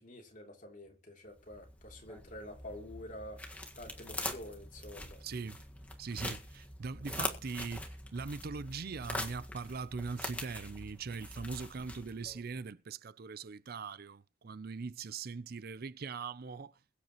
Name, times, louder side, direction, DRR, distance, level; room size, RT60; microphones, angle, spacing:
voice 1, 0.0-5.2, left 1 dB, 45° left, 3.1 m, -48 dB
sound 1, 1.4-12.4, left 1 dB, 10° left, 1.7 m, -43 dB
voice 2, 5.2-5.6 6.0-16.8, right 4 dB, 55° right, 0.5 m, -41 dB
22.0 x 8.2 x 3.0 m
head